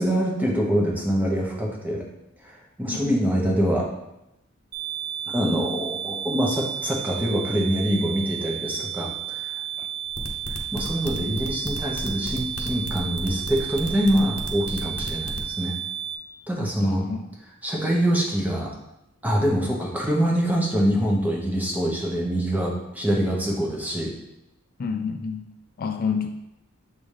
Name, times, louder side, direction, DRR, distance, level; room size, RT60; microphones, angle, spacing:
voice 1, 0.0-2.1 2.4-3.9 5.3-9.4 10.7-15.7 16.5-17.1 17.6-18.7 19.2-24.1, equal, 10° right, -2 dB, 0.9 m, -24 dB
voice 2, 2.9-3.2 9.8-9.9 16.8-17.3 24.8-25.5 25.8-26.3, left 5 dB, 45° left, 6 dB, 0.3 m, -29 dB
sound 1, 4.7-16.2, right 9 dB, 45° right, 0.5 m, -32 dB
sound 2, 10.1-15.4, left 2 dB, 75° left, 0.8 m, -34 dB
7.2 x 3.9 x 3.3 m, 0.88 s
head